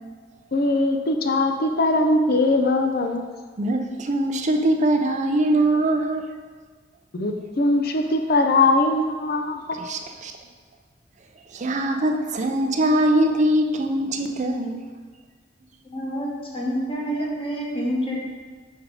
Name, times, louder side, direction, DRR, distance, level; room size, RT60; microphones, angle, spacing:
voice 1, 0.5-3.2 7.1-9.6, left 2 dB, 55° left, 5 dB, 0.6 m, -21 dB
voice 2, 3.6-6.3 9.8-10.3 11.5-14.9, right 1 dB, 40° right, 5 dB, 0.5 m, -22 dB
voice 3, 15.9-18.2, equal, 30° left, -4 dB, 1.3 m, -27 dB
5.3 x 4.9 x 4.8 m, 1.5 s
head